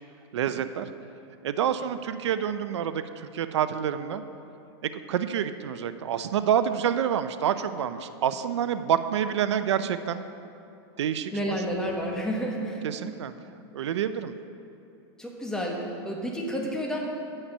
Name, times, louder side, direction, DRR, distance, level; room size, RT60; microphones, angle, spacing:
voice 1, 0.3-0.9 1.4-4.2 4.8-10.2 11.0-11.3 12.8-13.3 13.7-14.3, right 9 dB, 90° right, 11 dB, 0.5 m, -27 dB
voice 2, 11.3-12.9 15.2-17.1, equal, 5° left, -2 dB, 1.4 m, -30 dB
9.9 x 8.9 x 5.5 m, 2.7 s
supercardioid pair, 145°, 14 cm